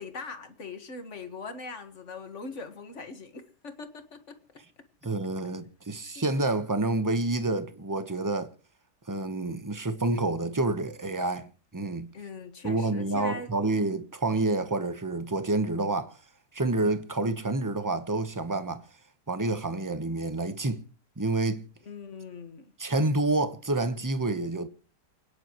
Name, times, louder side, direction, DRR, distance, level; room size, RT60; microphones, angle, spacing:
voice 1, 0.0-4.4 6.2-6.3 12.1-13.5 21.8-22.7, left 4 dB, 45° left, 1.9 m, -41 dB
voice 2, 5.0-8.5 9.1-12.1 12.6-16.1 16.5-18.8 19.3-20.8 21.2-21.7 22.8-24.7, right 2 dB, 15° right, 0.9 m, -28 dB
29.0 x 10.0 x 3.1 m
omnidirectional pair, 1.8 m